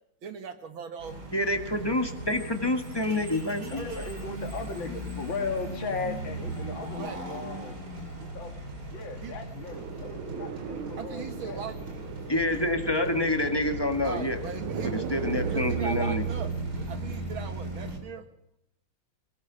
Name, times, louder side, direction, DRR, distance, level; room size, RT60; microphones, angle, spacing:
voice 1, 0.2-1.2 6.7-7.6 9.2-9.4 10.9-11.7 14.0-15.0 15.5-18.2, right 5 dB, 70° right, 7 dB, 2.4 m, -39 dB
sound 1, 1.0-18.0, right 2 dB, 50° right, 4.3 m, -37 dB
voice 2, 1.3-3.9 12.3-14.4 14.8-16.2, left 1 dB, 15° left, 6 dB, 1.5 m, -27 dB
voice 3, 3.7-7.8 8.2-8.6 8.9-11.6, left 4 dB, 65° left, 5 dB, 2.8 m, -37 dB
sound 2, 9.7-16.5, right 8 dB, 85° right, 2.0 m, -38 dB
22.5 x 20.0 x 6.2 m, 0.79 s
omnidirectional pair, 2.3 m